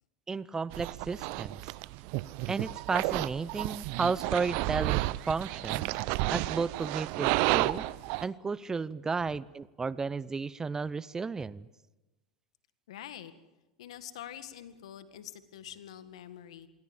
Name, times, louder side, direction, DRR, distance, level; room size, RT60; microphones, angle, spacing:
voice 1, 0.3-1.6 2.5-5.9 6.3-7.9 8.2-11.7, right 4 dB, 20° right, 20 dB, 0.7 m, -33 dB
sound 1, 0.7-8.2, right 20 dB, 60° right, 0.8 m, -31 dB
voice 2, 12.9-13.3 13.8-16.7, left 11 dB, 75° left, 12 dB, 1.8 m, -45 dB
27.0 x 22.0 x 7.2 m, 1.1 s
hypercardioid pair, 90°, 3 cm